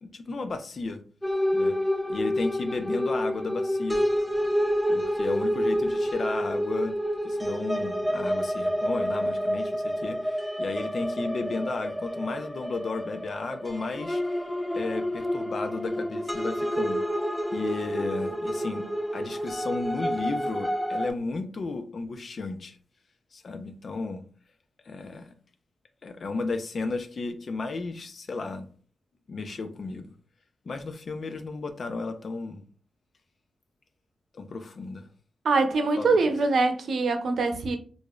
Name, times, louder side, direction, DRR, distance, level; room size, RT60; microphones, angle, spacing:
voice 1, 0.0-1.0 1.5-1.7 2.1-4.0 4.9-6.9 7.2-14.2 14.7-17.0 17.5-18.8 19.1-22.8 23.3-24.2 24.9-25.3 26.0-28.7 29.3-30.1 30.7-32.6 34.3-35.1 36.0-36.1, left 3 dB, 60° left, 0.5 m, -33 dB
sound 1, 1.2-21.1, equal, 5° left, 0.5 m, -29 dB
voice 2, 35.4-37.8, right 3 dB, 75° right, 0.6 m, -23 dB
4.7 x 2.6 x 2.4 m
cardioid pair, 70°, 0 cm